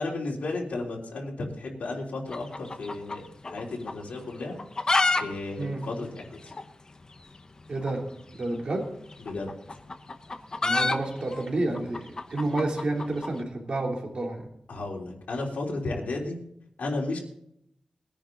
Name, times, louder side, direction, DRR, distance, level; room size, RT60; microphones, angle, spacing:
voice 1, 0.0-4.6 5.2-6.4 9.2-9.5 14.7-16.4 16.8-17.2, left 2 dB, 85° left, -2 dB, 3.3 m, -33 dB
sound 1, 2.3-3.6 3.9-4.0 4.5-5.2 5.5-5.6 5.8-5.9 6.5-6.6 7.8-8.0 9.1-13.3, left 3 dB, 30° left, 0.8 m, -27 dB
voice 2, 7.7-8.0 8.3-8.8 10.6-14.5, right 2 dB, 45° right, 0 dB, 3.0 m, -30 dB
21.0 x 10.0 x 3.9 m, 0.74 s
wide cardioid pair, 180°, 2 cm